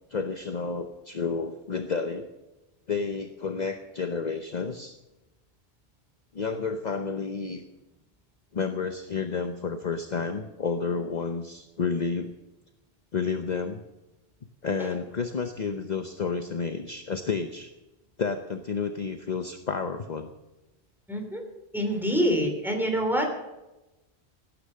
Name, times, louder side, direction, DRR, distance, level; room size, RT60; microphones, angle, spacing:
voice 1, 0.1-2.3 2.9-5.0 6.3-7.6 8.5-12.3 13.1-13.8 14.6-17.7 18.2-20.3, left 5 dB, 45° left, 7 dB, 0.9 m, -30 dB
voice 2, 21.1-21.4 21.7-23.3, equal, ahead, 2 dB, 3.4 m, -26 dB
18.5 x 10.0 x 6.4 m, 1.0 s
omnidirectional pair, 1.1 m